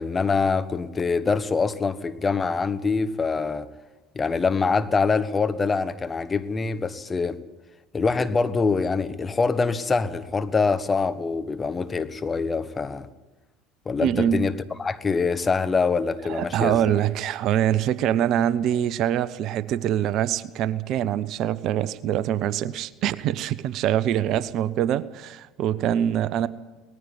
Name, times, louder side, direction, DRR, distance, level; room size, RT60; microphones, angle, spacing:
voice 1, 0.0-3.7 4.1-7.4 7.9-13.1 13.8-14.5 14.8-16.8, left 4 dB, 25° left, 12 dB, 1.3 m, -24 dB
voice 2, 14.0-14.5 16.3-26.5, right 10 dB, 55° right, 18 dB, 0.7 m, -24 dB
19.0 x 14.0 x 9.8 m, 1.1 s
hypercardioid pair, 70°, 0 cm